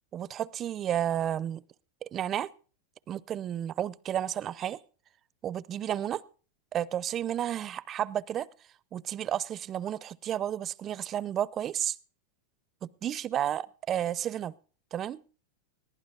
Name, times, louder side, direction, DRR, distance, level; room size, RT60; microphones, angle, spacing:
voice 1, 0.1-1.6 2.0-2.5 3.1-4.8 5.4-6.2 6.7-8.5 8.9-12.0 13.0-14.5 14.9-15.2, right 10 dB, 30° right, 21 dB, 0.5 m, -32 dB
21.0 x 15.0 x 2.5 m, 0.38 s
supercardioid pair, 130°, 0 cm